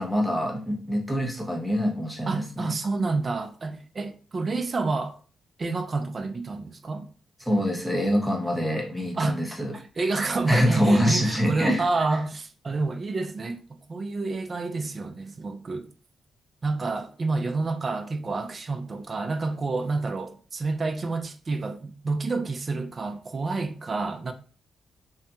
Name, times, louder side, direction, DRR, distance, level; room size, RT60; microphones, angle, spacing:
voice 1, 0.0-2.7 7.4-9.7 10.5-11.8, equal, ahead, 0.7 m, -25 dB
voice 2, 2.3-5.2 5.6-7.1 9.2-9.4 9.7-13.6 13.9-15.9 16.6-24.3, right 3 dB, 35° right, 0.3 m, -29 dB
2.6 x 2.6 x 2.3 m
cardioid pair, 125°, 0 cm